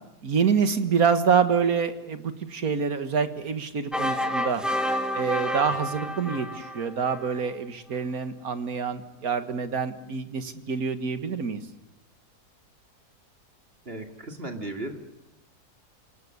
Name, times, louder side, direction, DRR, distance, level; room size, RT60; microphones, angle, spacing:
voice 1, 0.2-4.6 5.1-11.6, right 6 dB, 65° right, 10 dB, 2.1 m, -26 dB
sound 1, 3.9-7.4, equal, ahead, 2.0 m, -29 dB
voice 2, 13.8-15.0, right 2 dB, 35° right, 5 dB, 2.7 m, -36 dB
26.5 x 18.5 x 9.7 m, 0.88 s
omnidirectional pair, 1.7 m